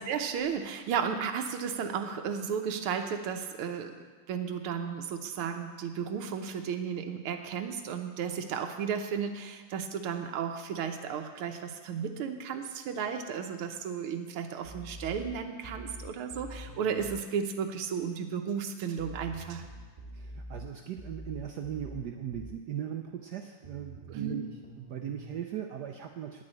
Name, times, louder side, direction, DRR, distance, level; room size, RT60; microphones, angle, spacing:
voice 1, 0.0-3.9 4.3-19.7 24.1-24.4, right 7 dB, 90° right, 6 dB, 1.7 m, -34 dB
sound 1, 14.6-17.2 19.0-22.6 23.6-25.3, right 1 dB, 20° right, 1.5 m, -45 dB
voice 2, 20.1-24.4 24.8-26.4, right 9 dB, 70° right, 4 dB, 1.0 m, -38 dB
10.0 x 6.2 x 8.7 m, 1.5 s
omnidirectional pair, 2.3 m